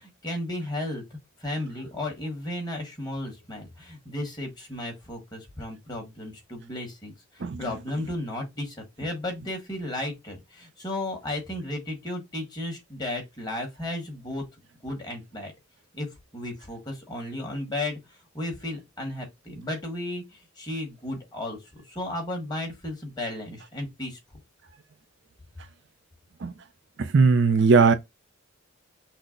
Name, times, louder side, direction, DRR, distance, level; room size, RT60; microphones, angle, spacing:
voice 1, 0.0-14.4 14.8-15.5 15.9-16.1 16.3-18.0 18.3-24.2, left 1 dB, 20° left, 1.6 m, -34 dB
voice 2, 27.0-27.9, right 4 dB, 55° right, 0.4 m, -18 dB
5.8 x 2.0 x 3.8 m
head